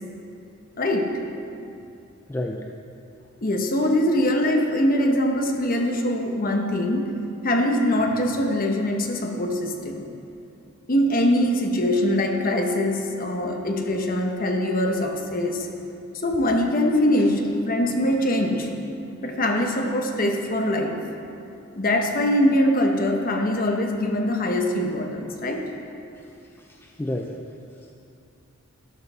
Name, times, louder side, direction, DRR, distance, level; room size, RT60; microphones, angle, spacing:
voice 1, 0.8-1.1 3.4-7.2 7.4-10.0 10.9-15.7 16.2-18.7 19.2-21.0 21.8-25.7, left 1 dB, 40° left, 3 dB, 0.9 m, -23 dB
voice 2, 2.3-2.6 18.6-18.7 26.2-26.3 26.5-27.4, left 1 dB, 10° left, 1 dB, 0.3 m, -32 dB
12.0 x 5.6 x 6.1 m, 2.7 s
head